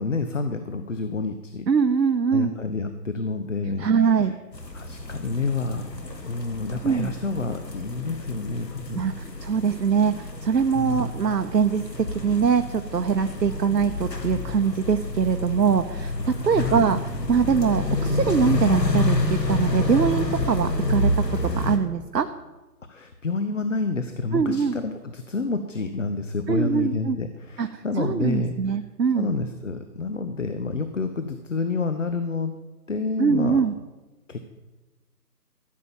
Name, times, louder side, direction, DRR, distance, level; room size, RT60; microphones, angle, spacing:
voice 1, 0.0-1.7 2.3-4.3 4.7-5.9 6.3-9.2 10.7-11.2 16.4-16.9 22.9-28.5 29.2-32.5 32.9-33.6 34.3-34.4, left 3 dB, 50° left, 8 dB, 0.9 m, -29 dB
voice 2, 1.7-2.5 3.8-4.3 6.8-7.1 8.9-9.1 9.4-17.0 17.3-21.1 21.6-22.3 24.3-24.7 26.5-27.2 27.6-29.3 33.2-33.7, right 6 dB, 90° right, 8 dB, 0.9 m, -23 dB
sound 1, 4.5-21.8, left 2 dB, 90° left, 2.3 m, -29 dB
14.0 x 7.5 x 7.1 m, 1.2 s
figure-of-eight pair, 170°, 48 cm